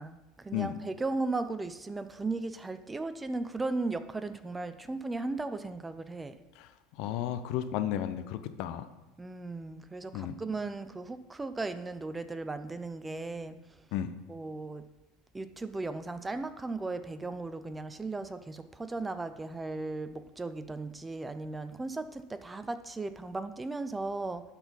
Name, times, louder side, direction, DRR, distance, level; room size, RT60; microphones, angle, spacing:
voice 1, 0.0-6.4 9.2-13.6 14.3-14.8 15.3-24.4, right 3 dB, 15° right, 11 dB, 0.6 m, -36 dB
voice 2, 7.0-8.8 10.1-10.4 13.9-14.1, left 11 dB, 65° left, 10 dB, 0.7 m, -33 dB
11.5 x 4.3 x 5.5 m, 1.0 s
hypercardioid pair, 85°, 0 cm